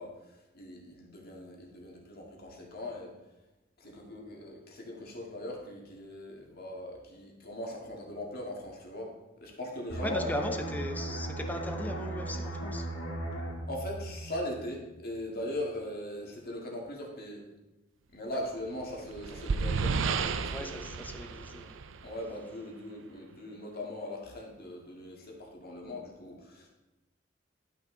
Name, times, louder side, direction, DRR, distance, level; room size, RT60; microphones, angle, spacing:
voice 1, 0.0-3.1 3.8-9.1 9.4-10.5 13.7-17.5 18.1-20.9 22.0-26.7, left 1 dB, 55° left, -1 dB, 2.0 m, -40 dB
sound 1, 9.9-15.3 15.6-15.9, right 1 dB, 85° left, 2.1 m, -38 dB
voice 2, 10.0-12.9 20.5-21.8, left 1 dB, 10° left, 4 dB, 0.8 m, -38 dB
sound 2, 18.7-22.3, right 5 dB, 90° right, 0.5 m, -32 dB
12.0 x 6.0 x 3.9 m, 1.0 s
head